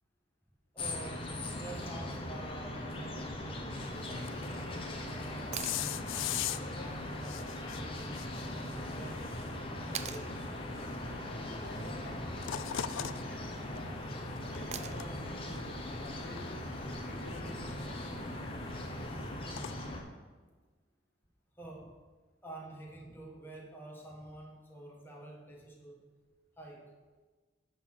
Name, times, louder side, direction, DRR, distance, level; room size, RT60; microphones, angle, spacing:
voice 1, 0.7-5.8 6.1-8.3 8.7-9.4 9.7-10.5 16.9-17.0 21.5-22.0 22.4-26.1 26.6-27.0, right 2 dB, 10° left, -2 dB, 1.4 m, -49 dB
sound 1, 0.8-20.0, left 1 dB, 30° left, 1.0 m, -40 dB
sound 2, 3.8-19.7, left 11 dB, 85° left, 0.4 m, -44 dB
sound 3, 5.5-5.8 8.1-8.2 9.9-10.3 12.3-12.7 14.7-15.2 17.3-17.4, right 9 dB, 35° right, 0.4 m, -41 dB
voice 2, 11.2-14.0 14.5-16.7 17.0-18.1, left 1 dB, 50° left, 2 dB, 1.3 m, -51 dB
11.0 x 3.9 x 6.3 m, 1.4 s
head